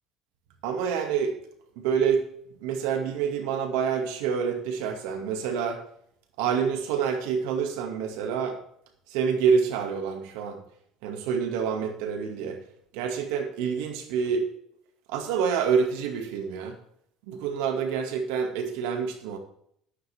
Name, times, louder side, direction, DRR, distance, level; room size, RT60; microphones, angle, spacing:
voice 1, 0.6-1.3 1.8-2.3 2.6-5.8 6.4-8.6 9.1-10.6 11.0-12.6 12.9-14.5 15.1-16.7 17.3-19.4, right 6 dB, 90° right, 5 dB, 2.4 m, -27 dB
13.5 x 11.5 x 3.7 m, 0.68 s
cardioid pair, 120°, 0 cm